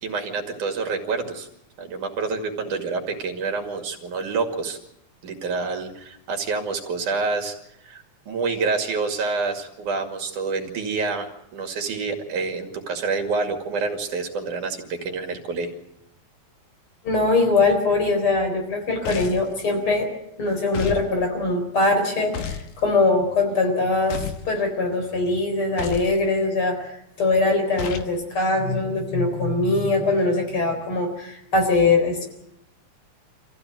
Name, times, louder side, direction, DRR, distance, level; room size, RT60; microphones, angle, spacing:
voice 1, 0.0-1.5 1.8-4.8 5.2-15.7, right 4 dB, 85° right, 3 dB, 3.8 m, -28 dB
voice 2, 17.0-20.1 20.4-32.3, left 3 dB, 45° left, 3 dB, 4.9 m, -22 dB
sound 1, 19.0-19.5 20.7-21.1 22.3-22.7 24.1-24.5 25.8-26.2 27.8-28.1, left 6 dB, 75° left, 2.7 m, -31 dB
26.0 x 15.0 x 9.1 m, 0.78 s
omnidirectional pair, 3.5 m